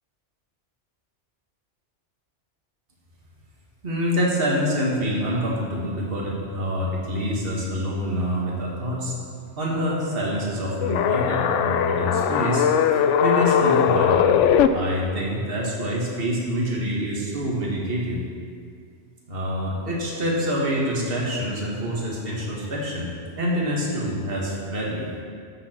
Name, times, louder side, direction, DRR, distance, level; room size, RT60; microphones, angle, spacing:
voice 1, 3.8-9.1 9.6-12.7 13.2-14.4 14.7-18.2 19.3-25.1, equal, 55° right, -4 dB, 2.0 m, -26 dB
sound 1, 10.8-14.7, left 8 dB, 90° left, 0.9 m, -20 dB
13.0 x 7.7 x 4.5 m, 2.2 s
omnidirectional pair, 1.2 m